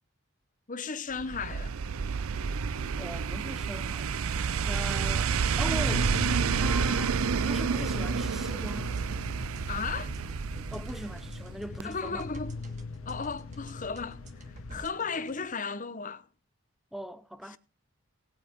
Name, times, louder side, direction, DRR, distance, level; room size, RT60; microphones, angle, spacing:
voice 1, 0.7-1.8 9.7-10.1 11.8-12.6 13.1-16.3 17.5-17.6, left 5 dB, 40° left, 0.9 m, -35 dB
sound 1, 1.2-11.5 11.8-11.9, right 6 dB, 85° right, 0.5 m, -30 dB
voice 2, 3.0-4.1 4.6-5.3 5.6-6.1 6.5-9.0 10.7-12.2 16.9-17.6, equal, ahead, 0.8 m, -40 dB
sound 2, 5.8-14.8, left 4 dB, 75° left, 0.6 m, -39 dB
sound 3, 6.0-15.4, right 2 dB, 35° right, 1.8 m, -50 dB
19.5 x 8.5 x 3.6 m
head